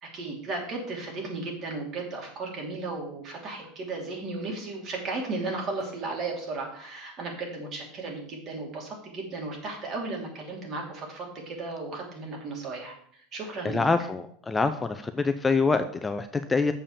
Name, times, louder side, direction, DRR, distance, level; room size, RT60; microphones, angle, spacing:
voice 1, 0.0-13.8, right 3 dB, 40° right, 0 dB, 3.1 m, -35 dB
voice 2, 13.6-16.7, left 4 dB, 15° left, 8 dB, 0.5 m, -25 dB
7.2 x 5.4 x 6.8 m, 0.62 s
supercardioid pair, 120°, 0 cm